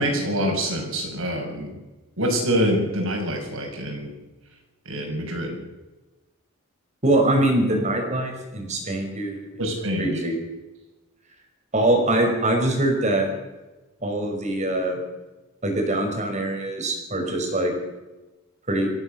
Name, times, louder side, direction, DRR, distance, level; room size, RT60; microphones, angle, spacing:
voice 1, 0.0-1.7 2.2-4.1 4.8-5.6 9.6-10.2, equal, 65° right, 2 dB, 6.7 m, -25 dB
voice 2, 7.0-9.6 10.0-10.4 11.7-13.3 14.0-15.0 15.6-17.7 18.7-18.9, right 1 dB, 30° right, 3 dB, 5.4 m, -23 dB
24.5 x 16.0 x 6.8 m, 1.1 s
head